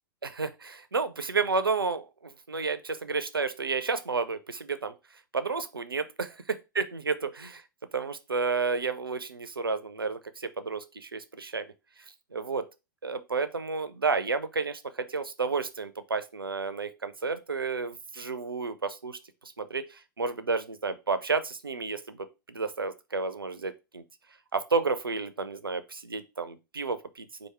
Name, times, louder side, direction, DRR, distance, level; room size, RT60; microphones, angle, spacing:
voice 1, 0.2-4.9 5.3-7.6 7.9-11.7 12.3-12.7 13.0-24.0 24.5-27.5, right 4 dB, 85° right, 0.6 m, -31 dB
4.8 x 2.6 x 4.2 m
figure-of-eight pair, 100°, 12 cm